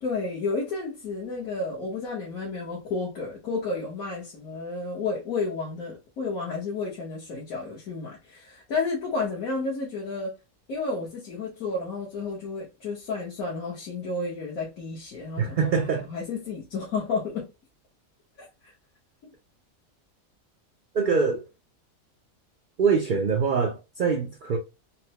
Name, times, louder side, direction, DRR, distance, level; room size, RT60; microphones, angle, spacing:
voice 1, 0.0-10.3 10.7-17.5 18.4-18.5, left 3 dB, 75° left, 1.5 m, -31 dB
voice 2, 15.4-16.1 20.9-21.4 22.8-24.6, right 5 dB, 80° right, 0.4 m, -24 dB
4.2 x 2.1 x 2.7 m
omnidirectional pair, 1.5 m